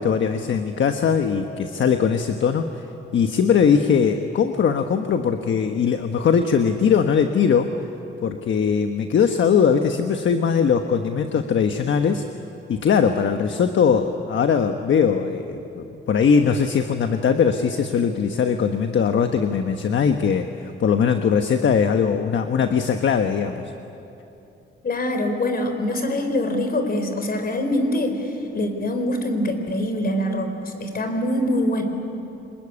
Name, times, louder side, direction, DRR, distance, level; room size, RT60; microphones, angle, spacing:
voice 1, 0.0-2.8 3.1-7.7 8.2-12.2 12.7-23.6, left 6 dB, 65° left, 6 dB, 1.2 m, -20 dB
voice 2, 24.8-31.8, left 1 dB, 45° left, 6 dB, 4.2 m, -24 dB
26.0 x 21.5 x 9.9 m, 2.9 s
cardioid pair, 90°, 21 cm